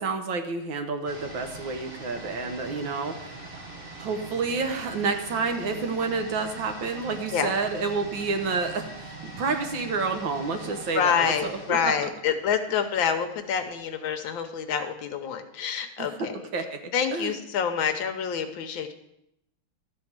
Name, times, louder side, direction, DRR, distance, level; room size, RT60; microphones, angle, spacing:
voice 1, 0.0-3.4 4.0-12.1 16.0-17.4, right 4 dB, 65° right, 5 dB, 1.6 m, -29 dB
sound 1, 1.0-12.8 13.1-13.2, right 3 dB, 30° right, 1.4 m, -42 dB
voice 2, 10.9-16.3 16.9-18.9, left 7 dB, 70° left, 7 dB, 1.4 m, -27 dB
12.5 x 4.4 x 7.3 m, 0.83 s
omnidirectional pair, 2.4 m